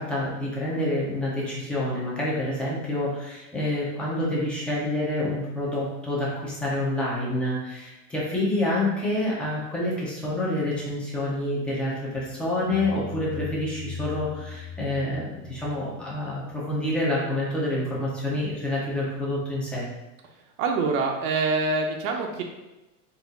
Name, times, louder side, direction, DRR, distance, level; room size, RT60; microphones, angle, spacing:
voice 1, 0.0-19.9, left 1 dB, 5° left, -7 dB, 0.3 m, -28 dB
sound 1, 12.1-16.7, left 4 dB, 30° left, 0.8 m, -40 dB
voice 2, 20.6-22.4, right 3 dB, 50° right, 2 dB, 0.6 m, -25 dB
3.9 x 2.3 x 3.9 m, 1.0 s
supercardioid pair, 140°, 47 cm